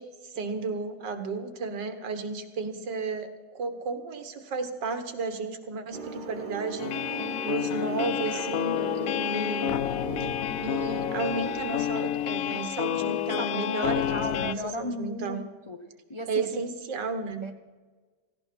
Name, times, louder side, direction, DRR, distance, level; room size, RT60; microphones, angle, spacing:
voice 1, 0.0-9.8 10.6-15.4 16.3-17.5, right 4 dB, 75° right, 8 dB, 2.0 m, -33 dB
sound 1, 5.9-11.8, right 4 dB, 35° right, 0.8 m, -38 dB
sound 2, 6.8-14.5, left 11 dB, 75° left, 0.8 m, -29 dB
voice 2, 13.4-15.8 16.1-16.6 17.4-17.5, left 1 dB, 35° left, 5 dB, 0.4 m, -37 dB
17.5 x 16.0 x 4.4 m, 1.4 s
omnidirectional pair, 2.0 m